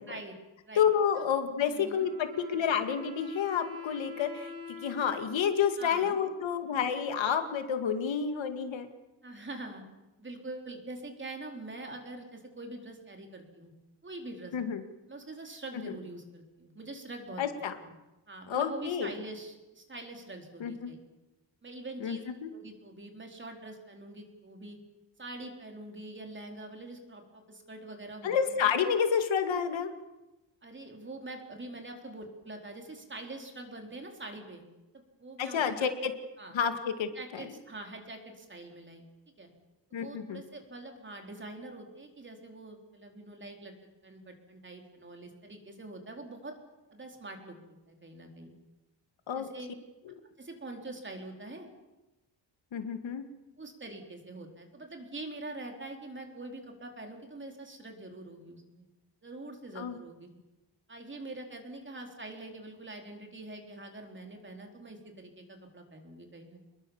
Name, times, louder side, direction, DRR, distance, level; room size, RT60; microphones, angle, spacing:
voice 1, 0.8-4.5 4.8-8.9 14.5-14.8 15.8-15.9 17.4-17.7 18.5-19.1 20.6-20.9 22.0-22.5 28.2-29.9 35.4-36.1 36.5-37.5 39.9-40.4 49.3-49.5 52.7-53.2 59.8-60.0, left 7 dB, 75° left, 7 dB, 2.3 m, -29 dB
voice 2, 1.7-2.1 5.8-6.2 9.2-9.8 10.2-13.7 14.0-14.5 15.1-17.4 18.3-21.0 21.6-22.2 22.5-24.8 25.2-28.7 30.6-34.6 34.9-35.9 36.4-36.6 37.1-39.0 39.4-39.5 39.9-43.7 44.0-46.6 46.9-47.6 47.9-48.5 49.3-49.7 50.4-51.7 53.6-58.9 59.2-60.3 60.9-66.6, right 2 dB, 25° right, 3 dB, 4.1 m, -44 dB
Wind instrument woodwind instrument, 1.7-7.2, left 6 dB, 55° right, 7.5 m, -46 dB
27.0 x 21.5 x 7.3 m, 1.0 s
wide cardioid pair, 155°, 46 cm